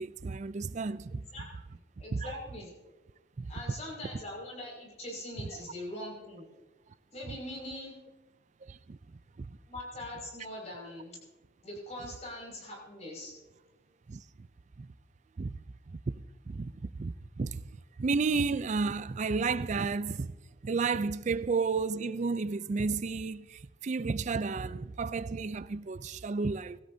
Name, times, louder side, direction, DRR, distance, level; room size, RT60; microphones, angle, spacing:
voice 1, 0.0-1.2 2.1-2.3 3.4-3.5 8.6-9.0 9.4-9.5 14.1-14.2 14.8-14.9 15.4-15.6 15.9-16.0 16.5-17.6 18.0-20.3 20.6-26.8, right 4 dB, 40° right, 0.4 m, -32 dB
voice 2, 1.1-1.5 2.0-2.7 3.5-6.5 7.1-8.0 9.7-11.2 11.6-13.3, left 1 dB, 35° left, 5.7 m, -42 dB
24.5 x 13.5 x 2.7 m
head